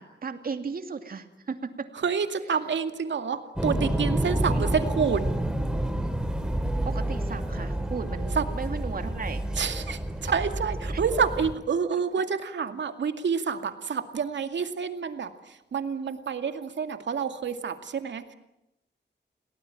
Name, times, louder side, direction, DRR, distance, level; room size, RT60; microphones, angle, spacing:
voice 1, 0.0-1.9 4.4-4.7 6.8-9.5 10.2-10.3 10.9-11.0 12.2-12.3, right 5 dB, 50° right, 7 dB, 2.6 m, -36 dB
voice 2, 1.9-5.2 8.4-8.5 9.6-18.3, right 6 dB, 70° right, 7 dB, 2.4 m, -28 dB
sound 1, 3.6-11.5, right 1 dB, 5° right, 2.6 m, -29 dB
29.5 x 18.5 x 9.0 m, 0.89 s
wide cardioid pair, 120°, 19 cm